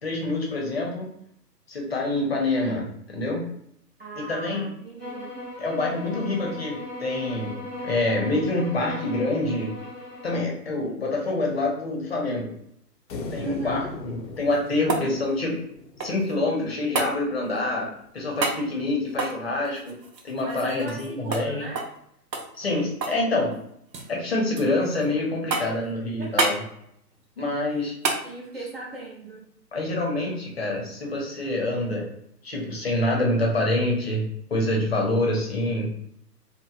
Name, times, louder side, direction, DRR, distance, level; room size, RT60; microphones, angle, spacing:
voice 1, 0.0-1.1 1.7-3.4 4.2-4.7 5.6-9.7 10.2-12.5 13.3-15.6 16.0-17.9 18.1-20.0 20.2-21.7 22.5-23.5 24.1-26.6 27.4-27.9 29.7-32.1 32.4-34.2 34.5-35.9, left 2 dB, 40° left, -1 dB, 0.6 m, -26 dB
voice 2, 4.0-5.4 5.9-6.2 13.4-14.0 20.4-21.9 26.2-26.4 27.7-27.9 28.2-29.5, right 1 dB, 40° right, -3 dB, 0.5 m, -37 dB
sound 1, 5.0-10.5, left 1 dB, ahead, 0.7 m, -38 dB
sound 2, 13.1-16.5, left 3 dB, 80° left, 0.6 m, -38 dB
sound 3, 14.3-16.4 17.0-17.2 18.4-18.6 19.1-21.1 21.3-21.5 21.8-22.0 22.3-23.2 23.5-24.1 24.6-25.1 25.5-25.9 26.4-26.6 28.0-28.3 30.6-30.7, right 3 dB, 85° right, 0.7 m, -29 dB
2.9 x 2.1 x 2.3 m, 0.72 s
figure-of-eight pair, 140°, 50 cm